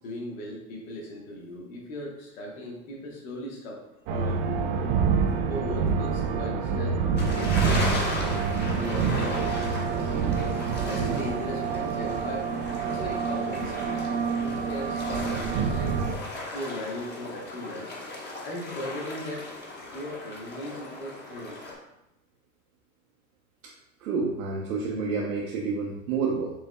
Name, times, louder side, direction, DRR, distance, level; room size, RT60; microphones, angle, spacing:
voice 1, 0.0-4.6 5.5-7.0 7.3-8.4 8.7-10.1 10.8-12.5 12.8-14.1 14.4-16.0 16.5-18.0 18.4-19.5 19.9-21.6, left 1 dB, 70° left, -1 dB, 1.3 m, -38 dB
sound 1, 4.1-16.1, right 5 dB, 45° right, 0.4 m, -27 dB
sound 2, 7.2-21.7, left 2 dB, 25° left, 1.0 m, -37 dB
voice 2, 24.0-26.5, right 4 dB, 80° right, -3 dB, 0.7 m, -29 dB
5.3 x 3.3 x 2.2 m, 0.89 s
hypercardioid pair, 95°, 42 cm